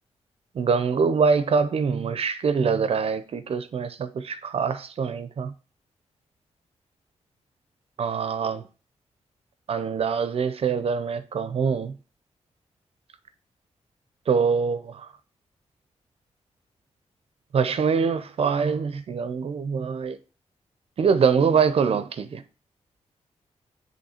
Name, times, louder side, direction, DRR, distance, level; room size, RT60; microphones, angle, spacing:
voice 1, 0.6-5.5 8.0-8.6 9.7-11.9 14.3-15.1 17.5-20.2 21.0-22.4, right 5 dB, 55° right, 0.5 m, -24 dB
8.0 x 3.1 x 4.2 m
wide cardioid pair, 120°, 12 cm